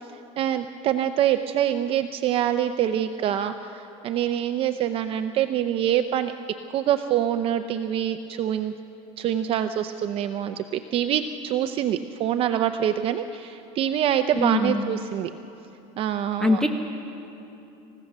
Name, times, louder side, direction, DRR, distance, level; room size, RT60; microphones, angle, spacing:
voice 1, 0.4-6.3 6.7-8.7 9.2-15.3 16.0-16.6, right 10 dB, 40° right, 9 dB, 0.6 m, -25 dB
voice 2, 14.3-14.8 16.4-16.7, left 2 dB, 5° left, 4 dB, 0.9 m, -22 dB
28.0 x 15.5 x 6.7 m, 3.0 s
cardioid pair, 155°, 14 cm